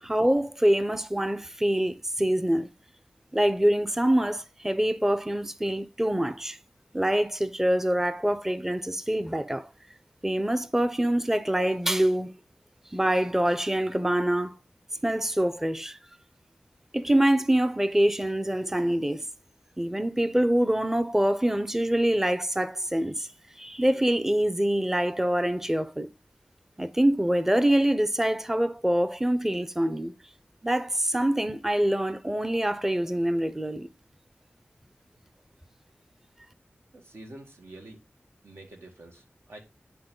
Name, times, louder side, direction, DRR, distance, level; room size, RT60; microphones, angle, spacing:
voice 1, 0.0-2.7 3.3-6.6 6.9-9.7 10.2-12.3 12.9-14.5 15.0-16.0 16.9-19.2 19.8-23.3 23.6-26.1 26.8-30.1 30.6-33.9, right 1 dB, 10° right, 0.6 m, -25 dB
voice 2, 36.9-38.0 38.4-39.6, right 2 dB, 80° right, 2.1 m, -47 dB
10.5 x 4.3 x 3.8 m
wide cardioid pair, 80°, 4 cm